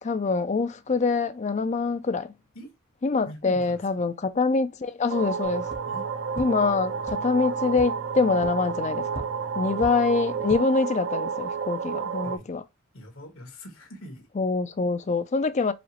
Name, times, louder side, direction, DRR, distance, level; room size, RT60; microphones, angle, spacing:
voice 1, 0.0-2.3 3.0-5.7 6.4-9.2 9.6-12.6 14.4-15.7, left 4 dB, 35° left, 0.4 m, -25 dB
voice 2, 3.2-4.1 5.8-6.0 12.2-12.4 12.9-14.3, equal, 75° left, 1.5 m, -43 dB
sound 1, 5.1-12.4, right 6 dB, 60° right, 0.5 m, -31 dB
sound 2, 5.4-10.4, right 3 dB, 90° right, 1.7 m, -44 dB
sound 3, 5.6-5.8 6.3-6.4 7.0-7.1 7.7-7.8 8.4-8.5 9.1-9.2 9.8-9.9 10.3-10.6, right 1 dB, 25° right, 1.0 m, -36 dB
4.9 x 3.0 x 2.9 m
head